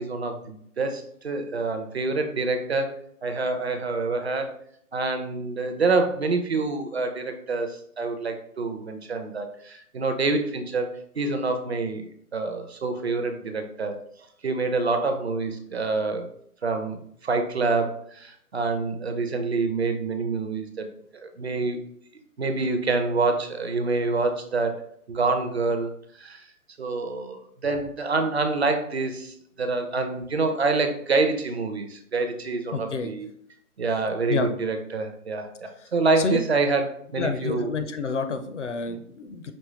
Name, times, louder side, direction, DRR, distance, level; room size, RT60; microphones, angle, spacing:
voice 1, 0.0-2.9 3.2-4.5 4.9-10.9 11.2-14.0 14.4-16.3 16.6-20.9 21.2-21.8 22.4-25.9 26.2-26.5 26.8-33.3 33.8-37.7 38.9-39.0, right 3 dB, 45° right, 6 dB, 0.5 m, -27 dB
voice 2, 32.7-33.1 34.3-34.5 36.2-36.4 37.2-39.5, left 4 dB, 50° left, 7 dB, 0.6 m, -29 dB
5.3 x 2.9 x 3.0 m, 0.66 s
figure-of-eight pair, 150°, 46 cm